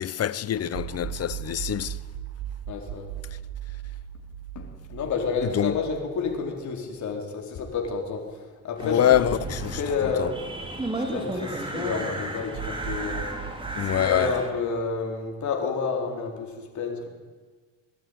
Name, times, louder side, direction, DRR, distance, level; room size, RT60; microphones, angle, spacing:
voice 1, 0.0-2.0 5.4-5.7 8.8-9.8 10.2-10.3 13.8-14.3, left 11 dB, 55° left, 0.9 m, -25 dB
sound 1, 0.7-7.1 7.4-7.5 9.1-11.6 12.5-15.3, right 10 dB, 85° right, 2.6 m, -38 dB
voice 2, 2.7-3.1 4.5-9.3 9.7-10.3 10.9-13.3 13.8-17.1, left 5 dB, 70° left, 4.1 m, -30 dB
sound 2, 8.8-14.5, right 1 dB, 15° right, 4.1 m, -34 dB
22.0 x 12.5 x 9.4 m
cardioid pair, 90°, 30 cm